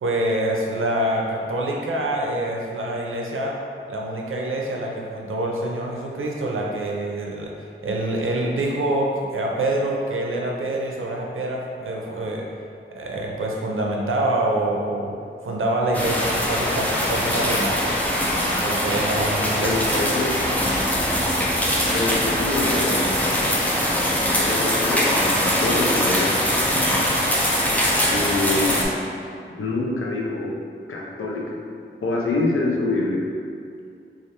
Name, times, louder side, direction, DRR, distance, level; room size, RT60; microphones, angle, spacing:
voice 1, 0.0-3.5 3.9-7.5 7.8-12.4 12.9-15.1 15.4-17.9 18.5-20.0, right 1 dB, 85° right, -1 dB, 0.5 m, -26 dB
sound 1, 15.9-28.8, equal, 5° left, 0.5 m, -22 dB
voice 2, 19.6-20.3 21.9-23.1 24.3-26.5 28.1-28.9 29.6-30.6 30.9-31.6 32.0-33.3, left 2 dB, 90° left, -2 dB, 0.5 m, -25 dB
3.1 x 2.4 x 2.8 m, 2.3 s
wide cardioid pair, 60°, 21 cm